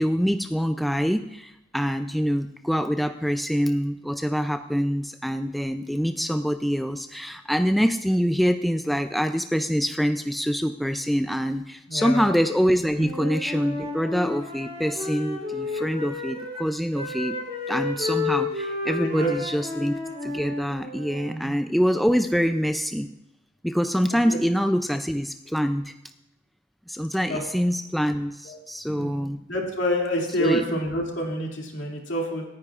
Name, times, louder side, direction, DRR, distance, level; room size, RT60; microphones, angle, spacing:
voice 1, 0.0-17.4 17.7-23.1 23.6-25.9 26.9-29.4 30.4-30.7, equal, ahead, 7 dB, 0.3 m, -25 dB
voice 2, 11.9-12.2 13.0-13.1 19.0-19.3 21.3-21.5 24.1-24.4 27.3-27.4 28.4-28.6 28.9-29.1 29.5-32.4, equal, 65° left, 0 dB, 2.5 m, -27 dB
Wind instrument woodwind instrument, 12.9-16.7 16.9-21.3, left 3 dB, 35° right, 3.8 m, -32 dB
27.0 x 9.6 x 2.4 m, 0.88 s
head